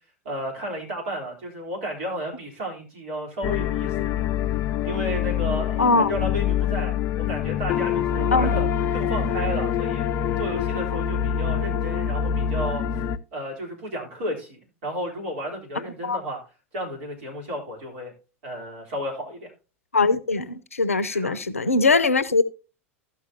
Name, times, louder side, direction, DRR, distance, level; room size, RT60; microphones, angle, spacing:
voice 1, 0.2-4.2 4.8-6.9 7.3-8.6 8.9-10.1 10.4-12.8 13.3-16.4 16.7-18.1 18.4-19.5 21.1-21.3, equal, 65° right, 3.7 m, -32 dB
sound 1, 3.4-13.2, left 9 dB, 45° left, 0.5 m, -25 dB
voice 2, 5.8-6.1 8.3-8.5 16.0-16.2 19.9-22.4, left 3 dB, 90° left, 0.6 m, -21 dB
15.0 x 6.0 x 2.8 m
figure-of-eight pair, 85°, 7 cm